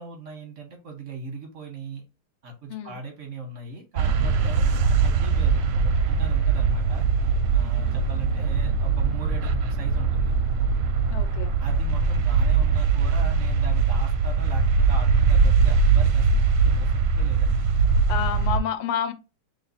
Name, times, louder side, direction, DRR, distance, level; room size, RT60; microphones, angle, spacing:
voice 1, 0.0-2.0 2.4-7.1 7.5-10.3 11.6-17.7, right 3 dB, 55° right, 0.9 m, -39 dB
sound 1, 4.0-18.6, right 5 dB, 70° right, 1.1 m, -21 dB
voice 2, 11.1-11.5 18.1-19.1, left 9 dB, 85° left, 1.5 m, -29 dB
3.2 x 3.2 x 4.0 m
omnidirectional pair, 2.3 m